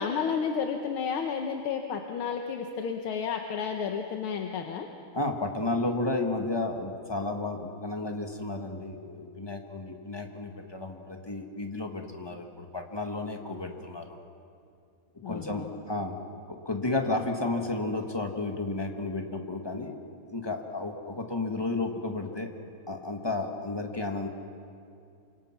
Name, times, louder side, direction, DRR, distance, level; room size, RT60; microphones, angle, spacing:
voice 1, 0.0-4.9 15.2-15.7, left 6 dB, 85° left, 3 dB, 2.0 m, -31 dB
voice 2, 5.1-14.2 15.2-16.1 16.5-20.0 20.3-22.5 22.9-24.3, left 2 dB, 15° left, 3 dB, 1.5 m, -32 dB
28.0 x 25.5 x 6.0 m, 2.5 s
omnidirectional pair, 2.3 m